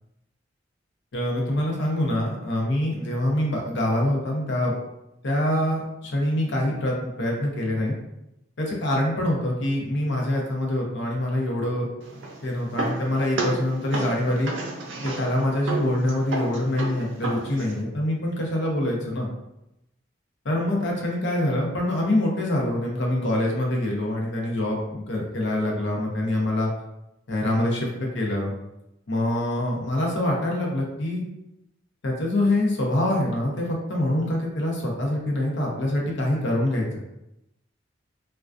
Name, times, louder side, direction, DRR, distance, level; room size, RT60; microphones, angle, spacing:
voice 1, 1.1-4.7 5.2-7.9 8.6-11.9 12.4-14.5 15.0-19.3 20.4-26.7 27.3-28.5 29.1-31.2 32.0-37.0, left 1 dB, 70° left, -1 dB, 0.6 m, -25 dB
sound 1, 12.0-17.8, right 2 dB, 80° right, 0.5 m, -32 dB
2.3 x 2.2 x 2.4 m, 0.88 s
head